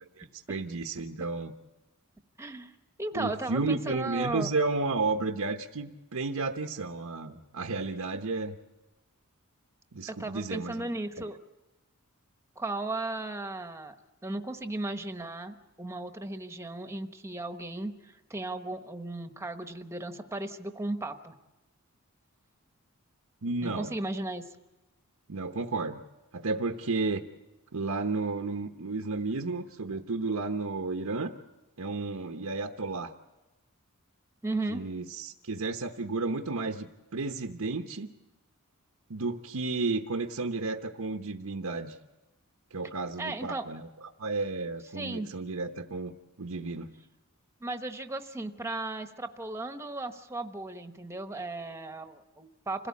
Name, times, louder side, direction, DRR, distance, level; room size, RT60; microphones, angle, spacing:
voice 1, 0.2-1.5 3.1-8.6 9.9-10.9 23.4-23.9 25.3-26.0 26.3-27.2 27.7-31.3 31.8-33.1 34.7-38.1 39.1-42.0 42.7-43.9 44.2-46.1 46.4-46.9, right 3 dB, 80° right, 5 dB, 1.0 m, -32 dB
voice 2, 2.4-4.5 10.1-11.4 12.6-13.9 14.2-21.3 23.6-24.6 29.9-30.0 34.4-34.8 43.2-43.6 44.9-45.3 47.6-52.9, right 2 dB, 10° right, 7 dB, 1.1 m, -36 dB
26.5 x 17.0 x 8.4 m, 1.1 s
head